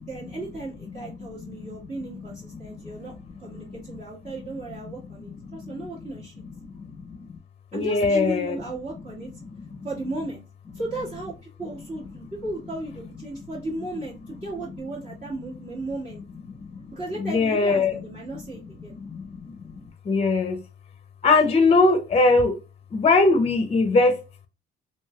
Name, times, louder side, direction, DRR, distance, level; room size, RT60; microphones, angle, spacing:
voice 1, 0.0-6.3 7.7-9.3 9.8-10.4 10.7-16.2 16.9-19.0, right 2 dB, 40° right, 1.5 m, -35 dB
voice 2, 7.7-8.6 17.2-17.9 18.9-19.5 20.1-20.6 21.2-22.6 22.9-24.2, left 3 dB, 30° left, 0.5 m, -20 dB
3.1 x 2.6 x 2.2 m
cardioid pair, 90°, 20 cm